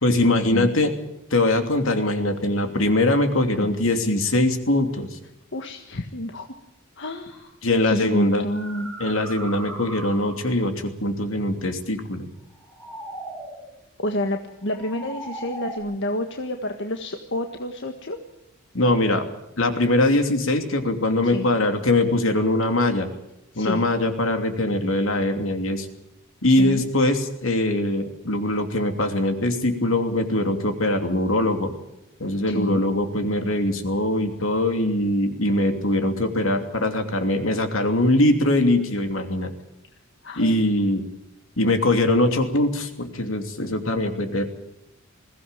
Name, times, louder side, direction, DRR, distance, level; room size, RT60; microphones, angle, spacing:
voice 1, 0.0-0.9 1.3-5.2 7.6-8.5 9.0-12.3 18.7-19.2 19.6-23.1 23.5-25.9 26.4-31.7 32.2-39.5 40.4-41.0 41.6-44.5, left 1 dB, 75° left, 6 dB, 3.0 m, -22 dB
voice 2, 5.5-6.5 7.0-7.5 7.8-8.9 14.0-18.2 21.2-21.5 23.5-23.8 26.6-26.9 32.5-32.9 40.2-40.6, left 1 dB, 60° left, 5 dB, 1.6 m, -29 dB
sound 1, 7.3-7.5 8.3-10.6 12.5-13.7 14.6-15.8, right 1 dB, 10° left, 7.5 m, -38 dB
21.5 x 16.5 x 9.1 m, 0.85 s
head